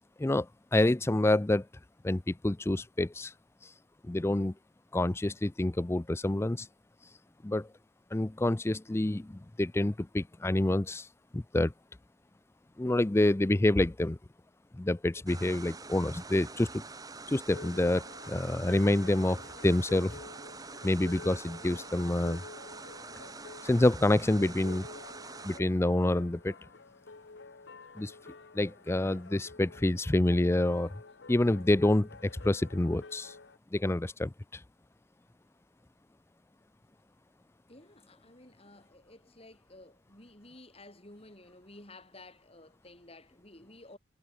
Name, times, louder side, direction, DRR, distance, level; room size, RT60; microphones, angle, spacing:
voice 1, 0.2-1.7 2.0-3.3 4.1-4.5 4.9-6.7 7.4-7.7 8.1-11.1 11.3-11.7 12.8-14.2 14.7-16.8 17.3-20.2 20.8-22.4 23.6-24.9 25.4-26.5 28.0-28.1 28.5-30.9 31.3-33.3 33.7-34.3, left 1 dB, 15° left, 0.4 m, -27 dB
sound 1, 15.3-25.6, right 3 dB, 20° right, 1.4 m, -46 dB
sound 2, 17.4-33.6, left 3 dB, 80° left, 1.0 m, -50 dB
voice 2, 37.7-44.0, left 2 dB, 35° left, 6.3 m, -53 dB
head